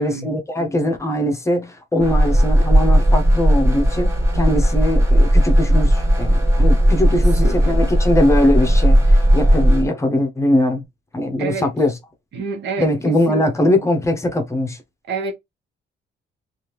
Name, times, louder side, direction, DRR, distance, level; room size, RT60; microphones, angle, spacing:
voice 1, 0.0-10.8 11.1-11.9 12.8-14.8, left 1 dB, 15° left, 0.6 m, -21 dB
sound 1, 2.0-9.8, equal, 15° right, 1.2 m, -15 dB
voice 2, 7.1-8.0 11.4-11.7 12.3-13.5 15.1-15.3, right 4 dB, 65° right, 1.1 m, -28 dB
3.3 x 2.4 x 2.8 m
cardioid pair, 165°, 19 cm